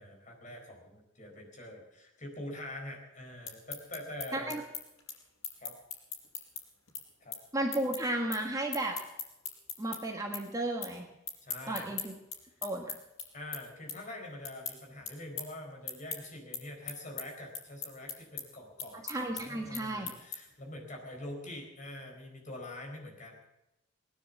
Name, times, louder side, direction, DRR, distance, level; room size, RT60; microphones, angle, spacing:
voice 1, 0.0-4.6 5.6-5.7 7.2-7.4 11.4-11.9 12.6-12.7 13.3-19.1 19.3-23.5, left 1 dB, 35° left, 1 dB, 4.4 m, -45 dB
sound 1, 3.2-10.0 10.3-10.9 11.2-20.6, left 6 dB, 90° left, 5.2 m, -41 dB
voice 2, 7.5-9.0 9.8-11.0 11.7-12.1 12.6-12.9 19.0-20.1, right 1 dB, 15° right, 1 dB, 1.5 m, -33 dB
19.5 x 10.0 x 7.4 m, 0.91 s
head